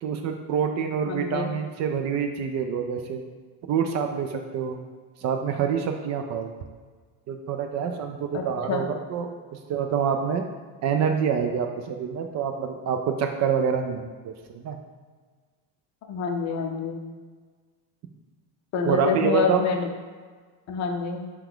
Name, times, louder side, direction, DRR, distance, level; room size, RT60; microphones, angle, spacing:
voice 1, 0.0-3.2 3.7-4.8 5.2-6.5 7.3-9.3 9.7-10.4 10.8-14.8 18.8-19.7, right 7 dB, 40° right, 5 dB, 0.4 m, -26 dB
voice 2, 1.1-1.5 8.3-8.9 16.1-17.0 18.7-19.9 20.7-21.3, left 5 dB, 40° left, 4 dB, 0.6 m, -27 dB
5.6 x 2.3 x 3.5 m, 1.5 s
cardioid pair, 135°, 44 cm